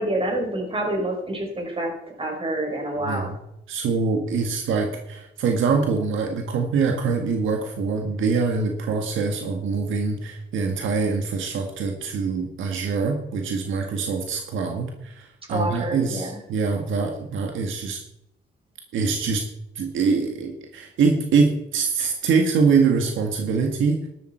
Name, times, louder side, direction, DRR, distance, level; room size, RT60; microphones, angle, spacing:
voice 1, 0.0-1.9 2.2-3.3 15.5-16.3, right 1 dB, 30° right, 1 dB, 5.2 m, -27 dB
voice 2, 3.0-3.4 3.7-18.0 18.9-19.4 19.8-24.0, right 5 dB, 75° right, 3 dB, 1.7 m, -24 dB
12.5 x 12.5 x 4.5 m, 0.85 s
cardioid pair, 90°, 20 cm